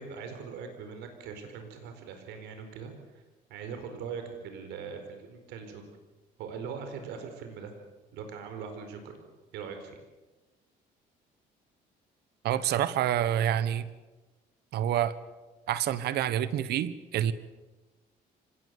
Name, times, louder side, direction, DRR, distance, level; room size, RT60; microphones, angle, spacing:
voice 1, 0.0-2.9 3.5-5.8 6.4-7.8 8.1-9.2 9.5-10.0, right 6 dB, 90° right, 6 dB, 4.5 m, -41 dB
voice 2, 12.4-13.9 14.7-15.1 15.7-17.3, right 11 dB, 75° right, 16 dB, 1.4 m, -27 dB
25.5 x 19.0 x 8.2 m, 1.2 s
cardioid pair, 110°, 17 cm